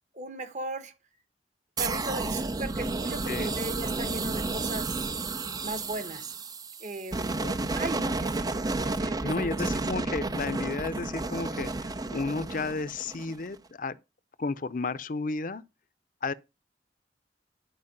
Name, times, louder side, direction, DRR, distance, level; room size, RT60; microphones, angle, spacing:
voice 1, 0.1-0.9 1.8-5.0 5.6-6.3 6.8-7.4 7.7-9.7, right 2 dB, 45° right, 1.2 m, -37 dB
sound 1, 1.8-13.6, right 3 dB, 20° right, 0.5 m, -32 dB
voice 2, 9.2-14.0 14.4-15.6 16.2-16.3, left 3 dB, 50° left, 0.6 m, -32 dB
11.0 x 4.5 x 6.6 m
head